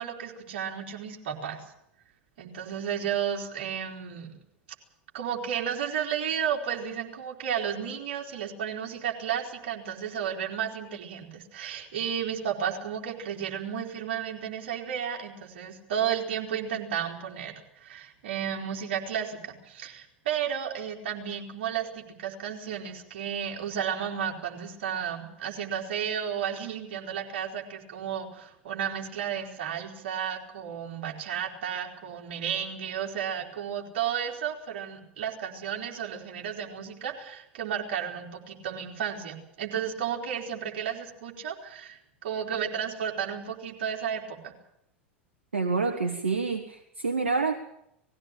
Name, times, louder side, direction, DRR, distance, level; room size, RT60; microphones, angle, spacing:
voice 1, 0.0-1.6 2.4-4.3 5.1-44.5, right 8 dB, 60° right, 1 dB, 3.9 m, -33 dB
voice 2, 45.5-47.5, right 4 dB, 80° right, 5 dB, 1.5 m, -27 dB
20.0 x 15.5 x 9.1 m, 0.78 s
figure-of-eight pair, 85°, 6 cm